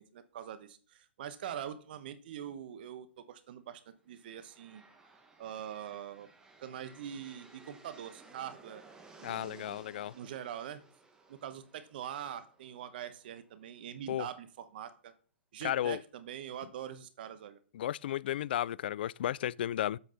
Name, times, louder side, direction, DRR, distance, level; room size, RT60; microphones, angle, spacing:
voice 1, 0.0-4.8 5.4-6.3 6.6-8.8 9.2-9.9 10.1-10.8 11.3-15.1 15.5-17.6, right 9 dB, 55° right, 1.1 m, -43 dB
sound 1, 4.0-13.9, right 3 dB, 10° right, 1.8 m, -58 dB
voice 2, 9.2-10.1 14.1-14.3 15.6-16.0 17.7-20.0, left 11 dB, 60° left, 0.3 m, -33 dB
8.0 x 7.7 x 4.0 m
hypercardioid pair, 120°, 6 cm